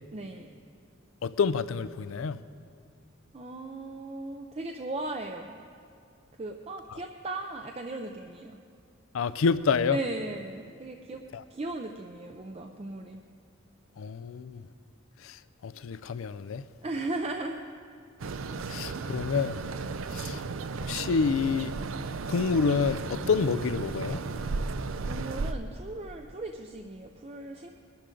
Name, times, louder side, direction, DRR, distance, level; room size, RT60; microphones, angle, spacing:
voice 1, 0.1-0.5 3.3-5.6 6.4-8.6 9.9-11.2 11.5-13.2 16.8-17.6 25.1-27.7, right 2 dB, 30° right, 0.5 m, -37 dB
voice 2, 1.2-2.4 6.9-7.0 9.1-10.0 11.3-11.4 14.0-14.6 15.2-16.7 18.7-19.6 20.1-20.4 20.8-21.7 22.3-24.2, left 5 dB, 85° left, 0.4 m, -28 dB
sound 1, 18.2-25.5, right 4 dB, 85° right, 0.5 m, -34 dB
21.0 x 11.5 x 3.8 m
head